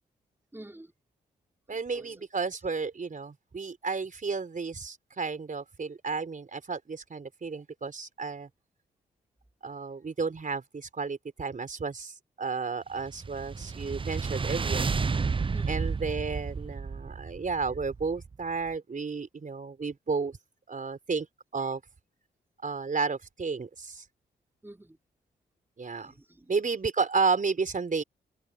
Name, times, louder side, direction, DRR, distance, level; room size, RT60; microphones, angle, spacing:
voice 1, 0.5-0.9 1.7-2.2 15.5-15.9 24.6-25.0 26.0-26.5, right 1 dB, 10° right, 4.5 m, -49 dB
voice 2, 1.7-8.5 9.6-14.9 15.7-20.4 20.7-21.3 21.5-21.8 22.6-24.0 25.8-26.1 26.5-28.0, right 4 dB, 45° right, 4.6 m, -32 dB
sound 1, 13.0-18.4, right 5 dB, 25° right, 0.6 m, -32 dB
open air
supercardioid pair, 55°, 19 cm